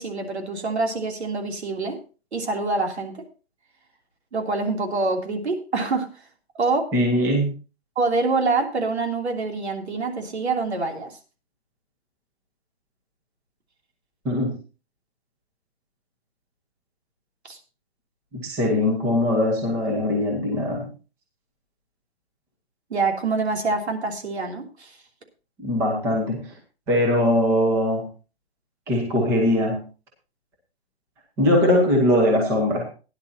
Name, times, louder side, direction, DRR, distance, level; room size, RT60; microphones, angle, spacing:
voice 1, 0.0-2.0 2.3-3.2 4.3-6.1 6.6-6.9 7.9-11.2 17.4-17.6 22.9-25.0, right 3 dB, 90° right, 3 dB, 3.1 m, -25 dB
voice 2, 6.9-7.5 14.2-14.5 18.3-20.9 25.6-26.4 26.9-28.0 28.9-29.8 31.4-32.9, left 1 dB, 10° right, 0 dB, 1.3 m, -21 dB
16.5 x 10.5 x 2.8 m, 0.34 s
hypercardioid pair, 175°, 32 cm